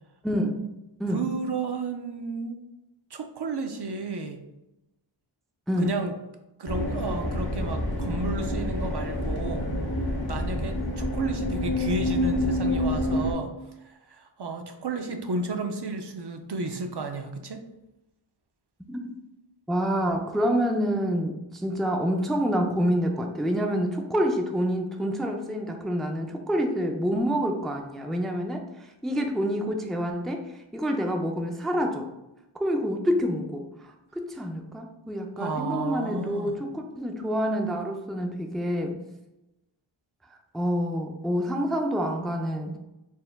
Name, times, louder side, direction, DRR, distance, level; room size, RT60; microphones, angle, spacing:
voice 1, 0.2-0.7 1.0-1.2 5.7-6.0 18.9-19.1 19.7-30.4 30.7-32.1 32.6-33.7 34.2-39.0 40.5-42.8, equal, ahead, 3 dB, 0.4 m, -27 dB
voice 2, 1.1-2.6 3.1-4.4 5.8-6.1 6.6-9.7 10.3-13.5 13.8-17.6 35.4-36.6, right 3 dB, 55° right, 5 dB, 0.5 m, -32 dB
sound 1, 6.7-13.3, left 1 dB, 50° left, 0.8 m, -28 dB
4.3 x 3.4 x 2.2 m, 0.94 s
wide cardioid pair, 45°, 48 cm